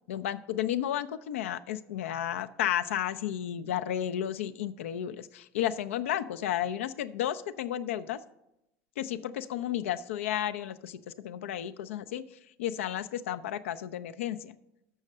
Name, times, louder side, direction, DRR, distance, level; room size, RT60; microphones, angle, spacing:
voice 1, 0.1-8.2 9.0-12.3 12.6-14.5, left 11 dB, 85° left, 11 dB, 0.4 m, -32 dB
6.6 x 6.3 x 7.2 m, 0.86 s
hypercardioid pair, 80°, 7 cm